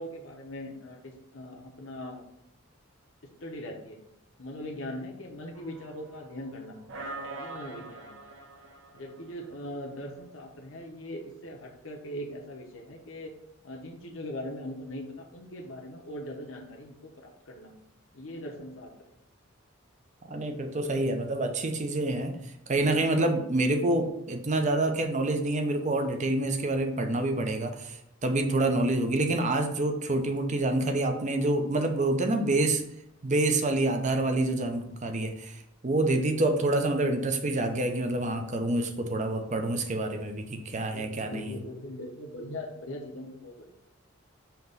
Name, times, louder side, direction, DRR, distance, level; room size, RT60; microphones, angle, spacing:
voice 1, 0.0-2.2 3.4-4.0 4.4-6.8 7.3-8.2 8.9-13.3 13.6-17.8 18.1-18.9 29.1-29.3 34.4-34.8 40.7-43.6, left 1 dB, 70° left, 0 dB, 1.0 m, -40 dB
sound 1, 5.5-6.5 6.9-9.7, right 2 dB, 65° right, 0.8 m, -43 dB
voice 2, 20.3-22.4 22.7-32.8 33.2-41.6, right 2 dB, 35° right, 5 dB, 0.7 m, -27 dB
5.8 x 3.0 x 5.5 m, 0.79 s
head